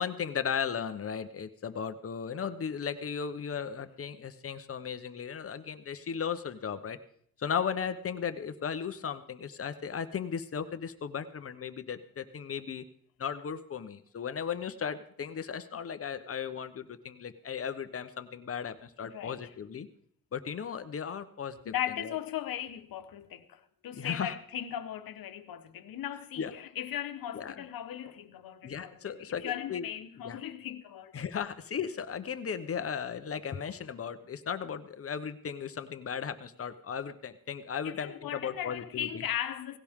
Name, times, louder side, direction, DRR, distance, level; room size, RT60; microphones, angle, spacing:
voice 1, 0.0-7.0 7.4-12.8 13.2-19.9 20.3-21.7 22.0-22.1 23.9-24.4 26.4-26.5 27.3-27.6 28.6-29.9 30.2-30.4 31.1-39.2, left 7 dB, 40° left, 1.0 m, -36 dB
voice 2, 19.0-19.4 21.6-31.1 37.8-39.8, left 11 dB, 80° left, 1.3 m, -38 dB
17.5 x 17.0 x 3.7 m
cardioid pair, 135°, 35 cm